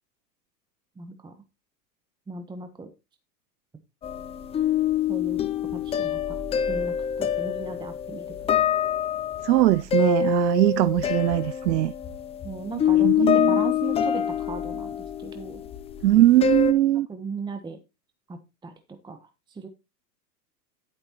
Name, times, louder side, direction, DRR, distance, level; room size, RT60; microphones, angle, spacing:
voice 1, 1.0-1.3 2.3-2.9 5.1-5.4 5.7-8.7 12.4-15.6 17.1-17.8 18.3-19.7, right 3 dB, 10° right, 1.0 m, -37 dB
sound 1, 4.0-16.7, left 9 dB, 15° left, 0.5 m, -26 dB
voice 2, 9.4-11.9 13.0-13.5 16.0-17.1, right 15 dB, 80° right, 0.6 m, -20 dB
11.0 x 9.7 x 3.0 m
hypercardioid pair, 115°, 50 cm